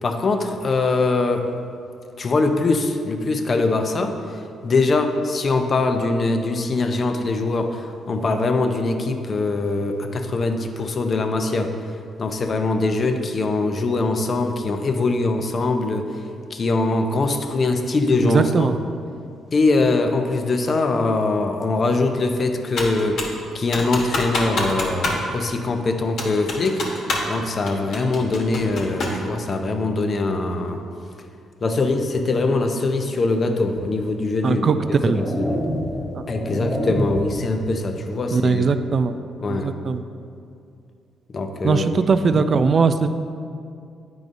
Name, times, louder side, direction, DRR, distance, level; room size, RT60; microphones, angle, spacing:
voice 1, 0.0-1.5 2.2-11.7 12.2-16.2 16.5-18.7 19.5-26.8 27.3-30.8 31.6-34.7 35.1-35.6 36.3-38.7 39.4-39.7 41.3-42.0 42.3-42.4, left 3 dB, 40° left, 5 dB, 0.6 m, -22 dB
voice 2, 18.2-18.8 34.4-34.8 35.0-35.2 36.1-36.2 38.3-39.2 39.5-40.0 41.6-43.1, right 5 dB, 45° right, 10 dB, 0.3 m, -19 dB
Computer keyboard, 22.8-23.4 23.7-25.2 25.5-25.6 26.2-27.4 27.7-29.2, left 2 dB, 65° left, 1.2 m, -26 dB
sound 1, 33.8-33.9 34.6-37.4, left 1 dB, 5° right, 0.9 m, -28 dB
9.3 x 4.8 x 2.6 m, 2.4 s
cardioid pair, 90°, 0 cm